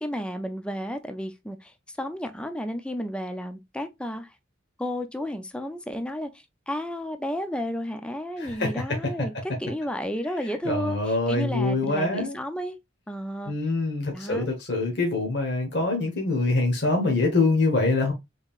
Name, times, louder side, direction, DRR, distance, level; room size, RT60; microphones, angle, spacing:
voice 1, 0.0-4.3 4.8-12.8 13.1-13.5 14.1-14.5, equal, 5° left, 0.4 m, -32 dB
voice 2, 8.4-8.7 10.6-12.3 13.5-18.1, left 2 dB, 60° left, 1.1 m, -24 dB
3.7 x 3.6 x 2.4 m
head